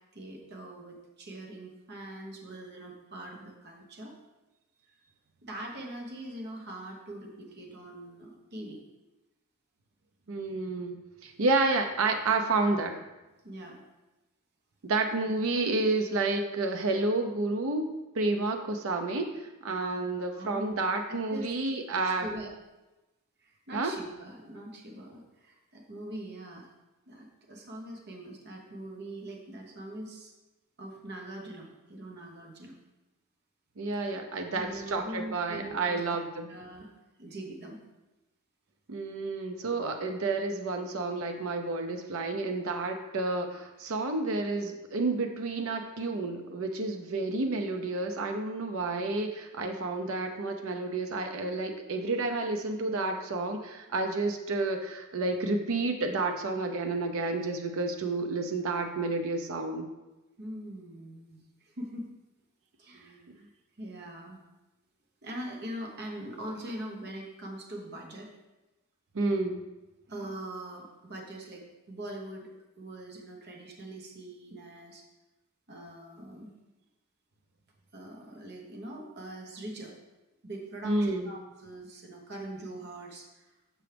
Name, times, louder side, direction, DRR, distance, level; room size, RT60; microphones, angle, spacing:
voice 1, 0.1-4.1 5.4-8.8 13.4-13.8 20.2-20.8 21.1-21.5 22.0-22.5 23.4-26.7 27.1-30.3 30.8-32.8 34.5-36.0 36.5-36.9 37.2-37.8 60.4-62.1 62.8-63.5 63.8-64.4 65.2-68.3 70.1-72.5 72.8-75.0 75.7-76.5 77.9-79.9 80.4-83.5, right 1 dB, 50° right, 0 dB, 1.0 m, -42 dB
voice 2, 10.3-13.0 14.8-22.3 23.7-23.9 33.8-36.5 38.9-59.9 63.1-63.3 69.1-69.6 80.8-81.3, right 3 dB, 65° right, 4 dB, 0.6 m, -30 dB
6.9 x 6.1 x 3.4 m, 1.0 s
head